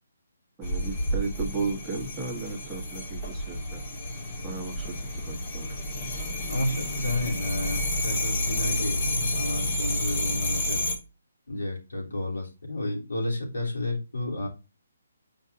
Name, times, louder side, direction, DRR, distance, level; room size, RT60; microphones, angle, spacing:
sound 1, 0.6-11.0, left 1 dB, 35° left, 1.7 m, -30 dB
voice 1, 0.6-3.8 4.4-5.7, right 4 dB, 10° right, -3 dB, 1.4 m, -35 dB
voice 2, 6.5-10.8 11.5-14.5, left 1 dB, 90° left, -3 dB, 3.7 m, -31 dB
8.1 x 5.2 x 2.8 m, 0.30 s
hypercardioid pair, 155°, 0 cm